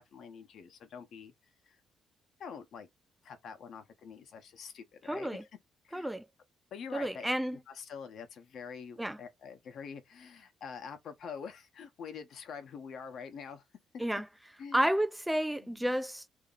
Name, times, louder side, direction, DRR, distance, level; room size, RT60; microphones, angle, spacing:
voice 1, 0.0-1.3 1.6-1.8 2.4-2.9 3.2-5.5 5.8-6.1 6.7-7.3 7.5-13.6 14.6-14.9 15.6-15.9, left 6 dB, 70° left, 0.9 m, -46 dB
voice 2, 5.1-5.4 5.9-6.2 6.9-7.6 9.0-9.2 14.0-14.2 14.7-16.3, right 1 dB, 5° right, 0.3 m, -31 dB
2.8 x 2.8 x 3.9 m
cardioid pair, 90°, 0 cm